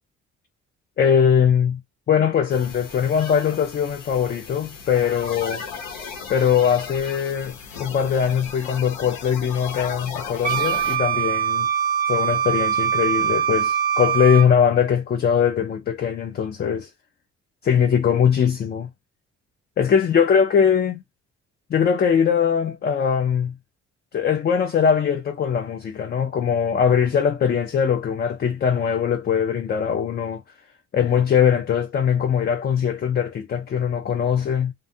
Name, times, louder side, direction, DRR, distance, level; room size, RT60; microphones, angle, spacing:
voice 1, 1.0-1.8 2.1-5.6 6.3-11.7 12.1-16.9 17.6-18.9 19.8-21.0 21.7-23.5 24.1-30.4 30.9-34.7, left 7 dB, 35° left, 0.4 m, -21 dB
sound 1, 2.5-11.0, left 6 dB, 85° left, 0.9 m, -36 dB
Wind instrument woodwind instrument, 10.4-14.5, right 8 dB, 30° right, 0.4 m, -22 dB
2.4 x 2.2 x 2.6 m
cardioid pair, 90°, 30 cm